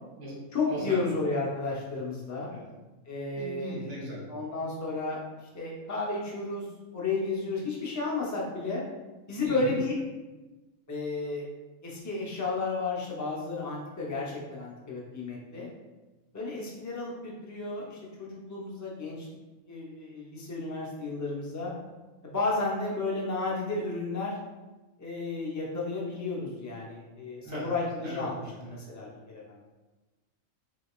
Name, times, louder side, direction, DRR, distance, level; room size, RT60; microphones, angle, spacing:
voice 1, 0.5-2.5 3.1-4.0 4.3-6.7 6.9-8.8 9.3-10.0 10.9-11.5 11.8-15.7 16.3-19.3 19.7-21.7 22.2-24.4 25.0-29.7, left 3 dB, 25° left, -4 dB, 0.4 m, -32 dB
voice 2, 3.3-4.2 9.4-9.8 27.4-27.7 28.0-28.5, right 2 dB, 65° right, -4 dB, 1.3 m, -38 dB
3.9 x 3.1 x 2.3 m, 1.1 s
omnidirectional pair, 1.4 m